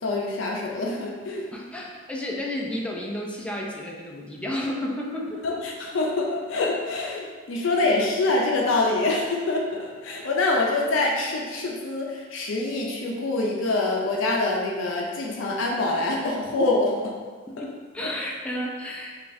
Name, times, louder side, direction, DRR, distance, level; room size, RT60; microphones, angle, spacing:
voice 1, 0.0-1.5 5.4-17.2 17.6-17.7, left 2 dB, 75° left, -1 dB, 0.5 m, -25 dB
voice 2, 1.5-5.6 17.5-19.1, left 1 dB, 5° left, -2 dB, 0.4 m, -32 dB
5.0 x 2.4 x 2.6 m, 1.5 s
head